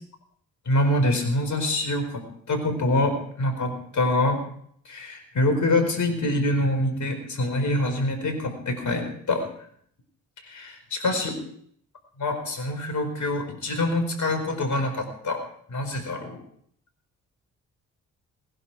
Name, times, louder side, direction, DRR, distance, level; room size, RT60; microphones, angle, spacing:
voice 1, 0.7-4.4 4.8-9.5 10.4-11.3 12.2-15.4 15.7-16.4, left 1 dB, 55° left, 7 dB, 4.7 m, -25 dB
20.0 x 11.5 x 4.9 m, 0.64 s
hypercardioid pair, 45°, 35 cm